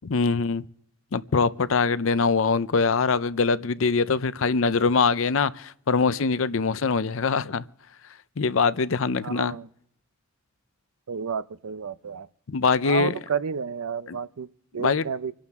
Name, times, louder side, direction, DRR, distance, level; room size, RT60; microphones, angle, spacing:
voice 1, 0.0-0.7 1.1-7.6 8.4-9.6 12.5-13.1 14.1-14.2 14.8-15.1, left 4 dB, 65° left, 0.6 m, -23 dB
voice 2, 9.2-9.7 11.1-12.3 12.8-15.3, right 6 dB, 85° right, 0.5 m, -31 dB
26.5 x 11.5 x 3.6 m
head